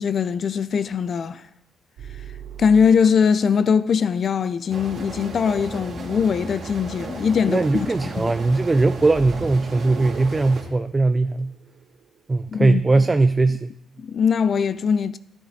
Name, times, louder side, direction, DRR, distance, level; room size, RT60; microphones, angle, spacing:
voice 1, 0.0-1.4 2.6-8.3 12.5-12.8 14.0-15.2, left 6 dB, 50° left, 0.5 m, -21 dB
sound 1, 2.0-3.5 9.1-12.2, right 8 dB, 70° right, 0.8 m, -40 dB
sound 2, 4.7-10.6, right 3 dB, 55° right, 2.4 m, -35 dB
voice 2, 7.5-11.5 12.3-13.7, right 3 dB, 25° right, 0.5 m, -20 dB
12.0 x 10.0 x 4.2 m
cardioid pair, 90°, 0 cm